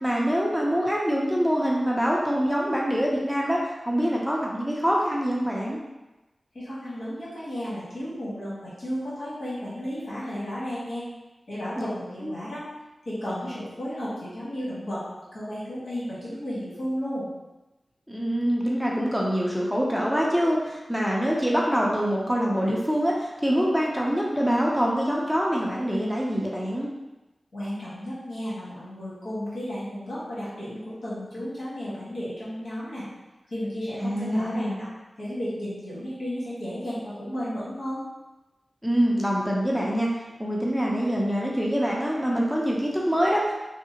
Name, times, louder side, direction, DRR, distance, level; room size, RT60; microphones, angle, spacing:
voice 1, 0.0-5.8 11.8-11.9 12.2-12.3 18.1-26.9 34.0-34.8 38.8-40.1 40.4-43.5, equal, ahead, -3 dB, 0.6 m, -25 dB
voice 2, 6.5-11.0 11.5-12.7 13.0-15.1 15.3-17.3 27.5-33.0 33.5-34.9 35.2-38.0, equal, 80° left, -10 dB, 1.5 m, -33 dB
3.6 x 2.0 x 2.8 m, 1.0 s
cardioid pair, 45°, 0 cm